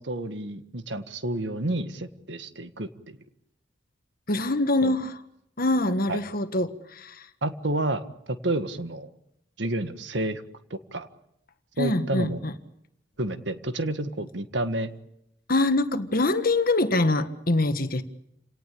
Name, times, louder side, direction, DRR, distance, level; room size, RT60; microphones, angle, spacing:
voice 1, 0.0-3.2 4.8-4.9 6.1-6.2 7.4-9.1 9.6-10.4 10.7-11.1 11.8-12.4 13.2-14.9, right 1 dB, 75° right, 10 dB, 1.7 m, -30 dB
voice 2, 4.3-5.2 5.6-7.3 11.8-12.5 15.5-18.0, left 2 dB, 55° left, 10 dB, 1.6 m, -24 dB
29.0 x 18.5 x 8.6 m, 0.81 s
head